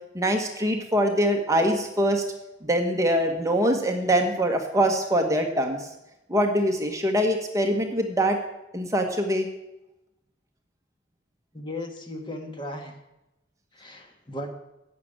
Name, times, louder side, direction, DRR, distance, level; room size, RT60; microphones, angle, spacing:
voice 1, 0.1-2.2 2.6-5.9 6.3-8.4 8.7-9.5, equal, 15° right, 3 dB, 1.3 m, -23 dB
voice 2, 11.5-13.0 13.7-14.5, left 1 dB, 25° left, 4 dB, 1.6 m, -36 dB
12.0 x 7.6 x 8.8 m, 0.93 s
head